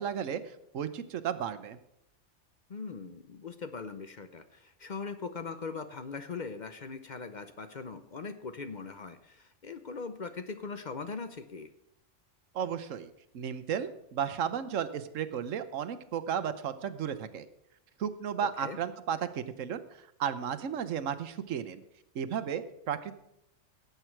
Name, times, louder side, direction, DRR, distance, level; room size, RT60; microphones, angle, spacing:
voice 1, 0.0-1.8 12.5-17.5 18.0-19.8 20.2-21.8 22.1-23.1, right 8 dB, 85° right, 12 dB, 1.2 m, -34 dB
voice 2, 2.7-11.7 18.6-18.8, left 4 dB, 45° left, 9 dB, 0.7 m, -40 dB
17.5 x 8.1 x 4.5 m, 0.81 s
omnidirectional pair, 1.3 m